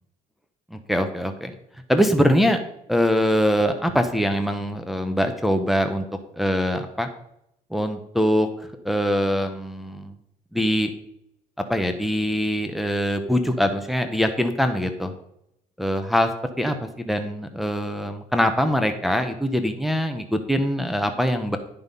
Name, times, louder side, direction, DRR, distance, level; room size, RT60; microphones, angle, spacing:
voice 1, 0.7-1.6 1.9-2.6 2.9-6.0 6.3-7.1 7.7-10.1 10.5-10.9 11.7-15.1 15.8-16.3 16.6-21.6, equal, ahead, 6 dB, 0.9 m, -23 dB
10.5 x 5.6 x 5.4 m, 0.78 s
cardioid pair, 110°, 17 cm